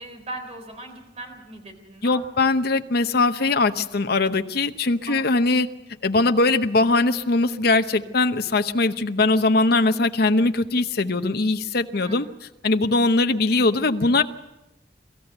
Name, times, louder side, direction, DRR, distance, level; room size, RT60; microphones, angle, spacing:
voice 1, 0.0-2.2 5.1-5.3 12.0-12.2, right 2 dB, 35° right, 5 dB, 3.7 m, -39 dB
voice 2, 2.0-5.7 6.0-12.3 12.6-14.2, left 3 dB, 60° left, 9 dB, 0.9 m, -21 dB
23.5 x 14.5 x 8.0 m, 0.97 s
head